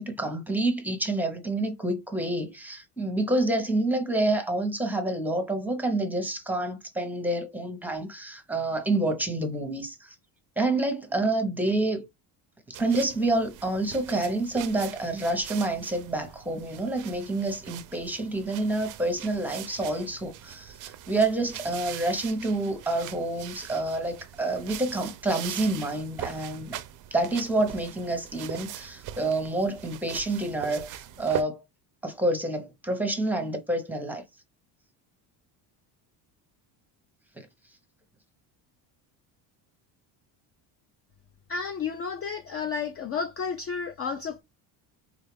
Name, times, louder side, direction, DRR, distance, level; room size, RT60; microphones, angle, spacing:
voice 1, 0.0-10.1 10.6-12.1 12.7-26.8 27.1-31.6 32.0-34.2 37.4-37.5, right 2 dB, 5° right, 0.7 m, -28 dB
sound 1, 12.7-31.4, right 12 dB, 45° right, 0.4 m, -41 dB
voice 2, 41.5-44.4, left 5 dB, 35° left, 0.4 m, -32 dB
3.8 x 2.3 x 3.3 m
cardioid pair, 115°, 44 cm